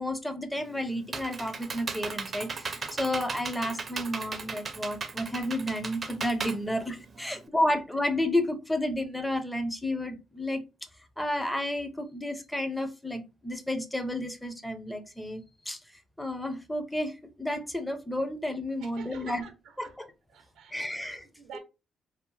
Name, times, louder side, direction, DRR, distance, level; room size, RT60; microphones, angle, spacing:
voice 1, 0.0-10.6 11.2-15.8 16.2-19.4 19.8-20.1 20.7-21.2 21.5-21.6, left 1 dB, 5° left, 0.5 m, -31 dB
Computer keyboard, 0.6-7.4, right 4 dB, 40° right, 0.5 m, -37 dB
voice 2, 18.8-20.0 20.3-21.6, right 8 dB, 85° right, 0.6 m, -49 dB
2.7 x 2.0 x 3.0 m
cardioid pair, 90°, 0 cm